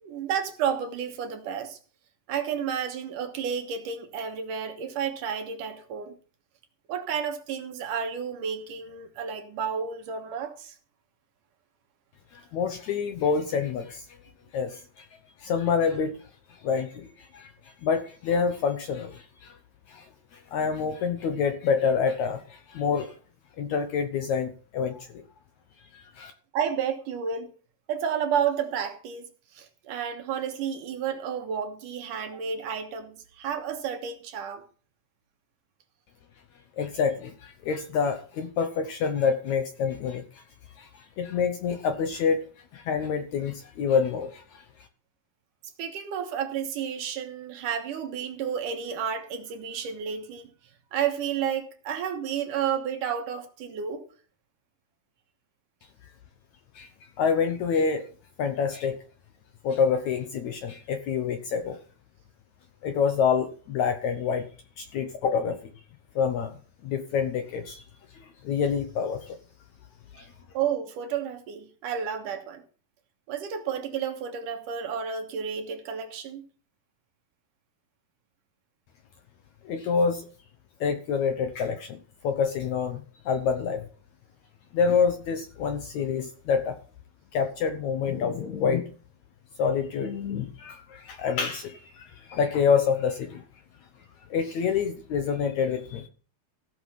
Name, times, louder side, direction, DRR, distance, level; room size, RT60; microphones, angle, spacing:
voice 1, 0.0-1.8 2.3-6.1 6.9-10.8 26.5-27.5 27.9-29.3 29.5-34.7 45.8-50.5 50.9-54.0 70.2-70.3 70.5-72.6 73.3-76.4, right 7 dB, 65° right, 2.7 m, -31 dB
voice 2, 12.3-14.1 14.5-15.1 15.4-16.2 16.5-19.6 19.9-23.1 23.6-25.2 25.9-26.3 36.8-40.4 40.8-44.6 56.7-58.1 58.4-59.0 59.6-61.8 62.8-64.5 64.8-65.7 66.2-66.5 66.8-67.8 68.1-69.4 70.1-70.2 79.6-80.3 80.8-82.0 82.2-83.8 84.7-86.8 87.3-88.9 89.6-93.4 94.3-96.1, left 6 dB, 70° left, 1.9 m, -27 dB
16.0 x 6.4 x 5.8 m
omnidirectional pair, 4.2 m